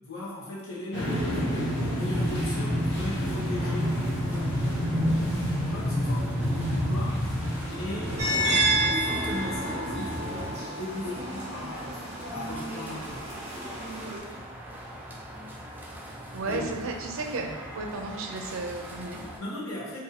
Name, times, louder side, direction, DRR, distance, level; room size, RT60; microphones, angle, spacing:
voice 1, 0.0-13.3 16.2-16.7 17.4-17.5 19.4-20.0, left 1 dB, 80° left, -6 dB, 1.1 m, -38 dB
sound 1, 0.9-10.5, equal, 55° left, 1.1 m, -29 dB
sound 2, 1.0-19.4, right 1 dB, 10° right, 0.3 m, -43 dB
sound 3, 8.2-14.2, right 1 dB, 30° right, 1.0 m, -30 dB
voice 2, 16.3-17.4 17.7-19.2, right 3 dB, 70° right, 3 dB, 0.4 m, -33 dB
2.7 x 2.6 x 4.0 m, 1.4 s
head